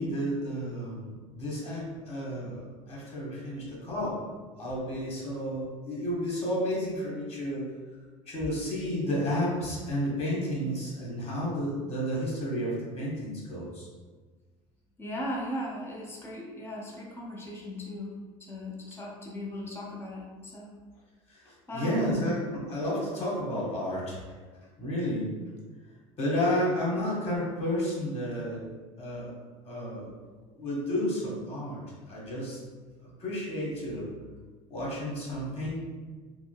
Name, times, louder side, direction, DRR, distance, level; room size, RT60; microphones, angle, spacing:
voice 1, 0.0-2.6 2.9-4.2 4.6-7.7 8.3-13.9 21.3-24.2 24.8-25.3 26.2-28.6 29.0-29.3 29.6-30.1 30.5-31.8 32.1-32.6 33.0-34.1 34.7-35.8, equal, 35° left, -5 dB, 1.3 m, -31 dB
voice 2, 15.0-18.1 18.4-20.7 21.7-22.2, left 1 dB, 15° left, -4 dB, 0.7 m, -38 dB
3.7 x 2.1 x 2.3 m, 1.4 s
hypercardioid pair, 80°, 18 cm